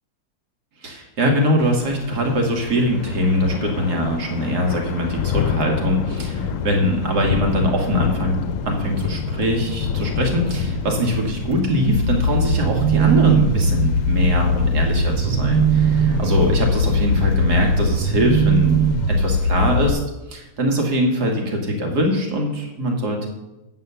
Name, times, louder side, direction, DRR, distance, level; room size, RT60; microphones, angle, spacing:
voice 1, 0.8-8.4 8.7-20.0 20.3-23.3, equal, 85° right, 1 dB, 2.3 m, -22 dB
Thunder / Rain, 1.6-20.0, left 7 dB, 65° left, 0.9 m, -29 dB
sound 1, 6.0-19.1 19.4-19.5, right 4 dB, 35° right, 0.8 m, -33 dB
sound 2, 11.9-19.9, right 2 dB, 60° right, 1.1 m, -19 dB
8.3 x 7.5 x 6.7 m, 1.0 s
omnidirectional pair, 1.7 m